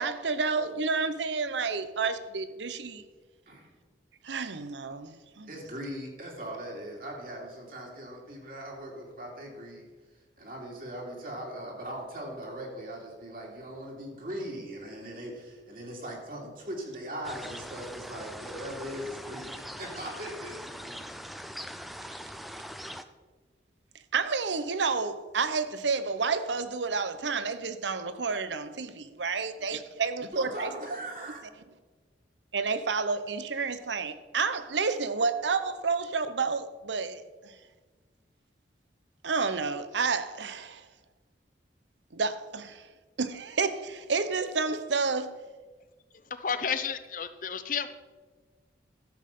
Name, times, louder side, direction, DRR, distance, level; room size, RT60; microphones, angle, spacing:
voice 1, 0.0-3.0 4.2-5.5 24.1-30.7 32.5-37.2 39.2-40.8 42.1-42.9 43.2-45.4, right 4 dB, 90° right, 0.8 m, -30 dB
voice 2, 5.5-9.9 10.4-21.3 30.3-31.4, right 1 dB, 50° right, 2.8 m, -40 dB
sound 1, 17.2-23.0, equal, ahead, 0.4 m, -42 dB
voice 3, 46.3-47.9, left 7 dB, 45° left, 0.7 m, -31 dB
13.0 x 7.6 x 5.5 m
head